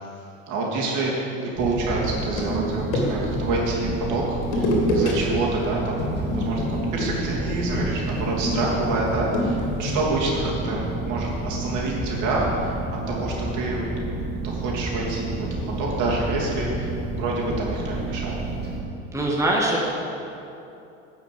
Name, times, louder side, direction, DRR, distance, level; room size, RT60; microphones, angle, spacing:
voice 1, 0.5-13.8 14.4-15.5 15.8-18.4, right 2 dB, 65° right, -4 dB, 3.0 m, -27 dB
sound 1, 1.6-18.8, right 2 dB, 30° right, 2.1 m, -30 dB
sound 2, 2.0-3.4 4.4-5.1 5.4-5.7 6.0-10.0, left 1 dB, 90° left, 2.3 m, -27 dB
voice 2, 19.1-19.8, right 1 dB, 10° right, -3 dB, 1.8 m, -22 dB
10.0 x 6.2 x 7.7 m, 2.8 s
supercardioid pair, 90°, 32 cm